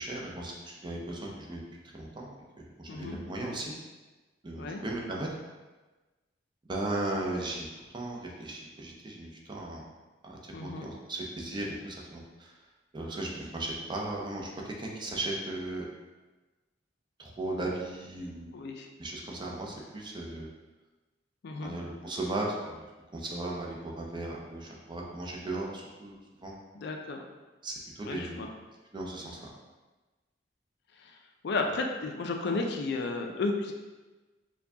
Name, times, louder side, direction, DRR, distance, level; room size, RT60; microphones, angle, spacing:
voice 1, 0.0-1.6 1.9-3.7 4.4-5.3 6.7-7.7 7.9-9.8 10.2-12.5 12.9-15.9 17.2-18.5 19.0-20.5 21.6-22.8 23.1-26.2 26.4-26.5 27.6-28.5 28.9-29.4, right 2 dB, 25° right, -2 dB, 0.5 m, -36 dB
voice 2, 2.9-3.2 4.6-4.8 10.5-10.9 17.6-17.7 18.5-18.9 21.4-21.8 26.7-27.2 28.0-28.5 31.0-31.2 31.4-33.7, left 3 dB, 60° left, 3 dB, 0.4 m, -33 dB
4.4 x 2.3 x 2.7 m, 1.2 s
head